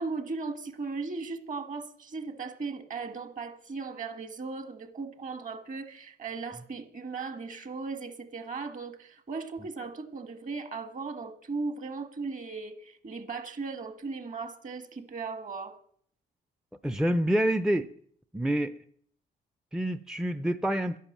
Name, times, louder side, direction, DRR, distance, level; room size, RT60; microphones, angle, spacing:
voice 1, 0.0-15.8, right 4 dB, 40° right, 1.6 m, -37 dB
voice 2, 16.8-17.9 18.3-18.7 19.7-21.0, right 1 dB, 5° right, 0.5 m, -27 dB
11.0 x 10.5 x 7.4 m
cardioid pair, 90°, 20 cm